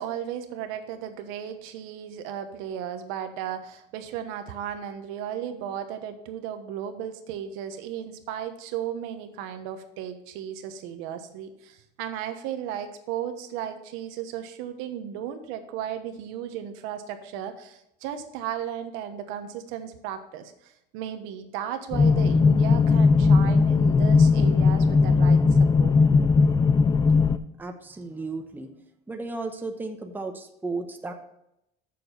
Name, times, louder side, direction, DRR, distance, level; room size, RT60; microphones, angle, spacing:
voice 1, 0.0-25.9, right 9 dB, 85° right, 7 dB, 1.1 m, -35 dB
sound 1, 21.9-27.4, left 4 dB, 20° left, 0.3 m, -18 dB
voice 2, 27.6-28.7 29.1-31.1, right 3 dB, 10° right, 4 dB, 0.9 m, -34 dB
7.6 x 6.8 x 5.6 m, 0.82 s
cardioid pair, 140°, 21 cm